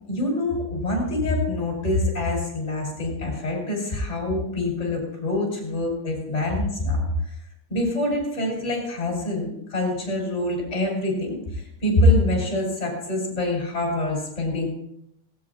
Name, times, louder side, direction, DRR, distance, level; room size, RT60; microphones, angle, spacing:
voice 1, 0.1-7.0 7.7-14.7, left 1 dB, 15° left, -1 dB, 5.5 m, -25 dB
18.5 x 17.5 x 3.0 m, 0.78 s
omnidirectional pair, 5.3 m